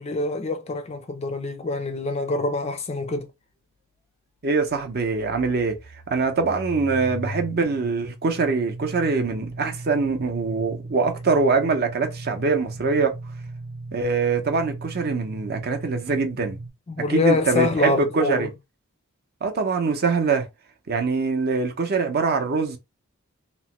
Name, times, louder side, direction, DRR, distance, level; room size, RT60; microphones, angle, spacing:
voice 1, 0.0-3.3 16.9-18.5, left 3 dB, 30° left, 0.4 m, -25 dB
voice 2, 4.4-5.8 6.1-13.2 13.9-16.6 17.1-18.5 19.4-20.5 20.9-22.8, right 4 dB, 45° right, 0.6 m, -23 dB
sound 1, 4.7-16.7, right 1 dB, 15° right, 0.9 m, -37 dB
3.0 x 2.1 x 3.0 m
head